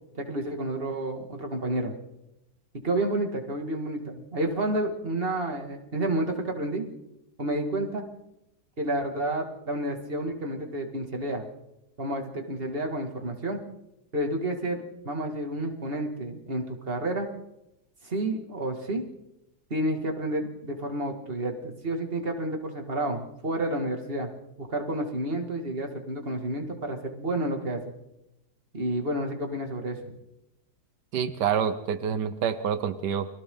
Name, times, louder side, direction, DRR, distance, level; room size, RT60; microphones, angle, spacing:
voice 1, 0.1-1.9 2.8-6.8 7.4-8.0 8.8-11.4 12.0-13.6 14.1-17.3 18.0-19.0 19.7-24.3 24.6-27.9 28.7-30.1, right 1 dB, 35° right, 3 dB, 2.7 m, -30 dB
voice 2, 31.1-33.3, right 7 dB, 90° right, 11 dB, 1.6 m, -27 dB
29.5 x 23.0 x 4.0 m, 0.91 s
omnidirectional pair, 1.8 m